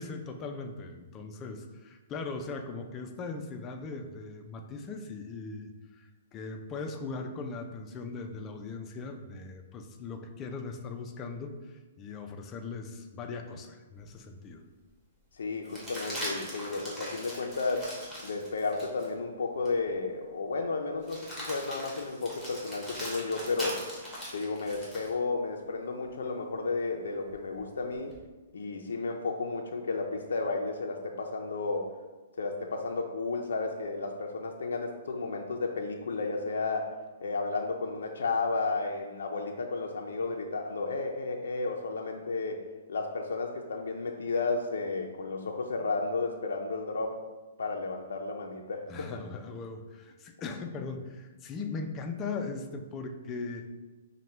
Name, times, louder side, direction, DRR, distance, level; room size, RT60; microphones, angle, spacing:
voice 1, 0.0-14.6 48.9-53.7, left 4 dB, 20° left, 5 dB, 0.3 m, -39 dB
sound 1, 14.1-14.2 15.6-19.1 19.6-19.8 21.0-25.1 27.3-28.2, equal, 5° right, 1.0 m, -41 dB
voice 2, 15.4-17.9 18.2-23.8 24.3-28.1 28.5-31.9 32.4-36.9 37.2-42.6 42.9-47.2 47.6-48.8 49.1-49.2, left 3 dB, 85° left, 1 dB, 0.4 m, -33 dB
5.5 x 2.1 x 3.1 m, 1.2 s
hypercardioid pair, 165°, 0 cm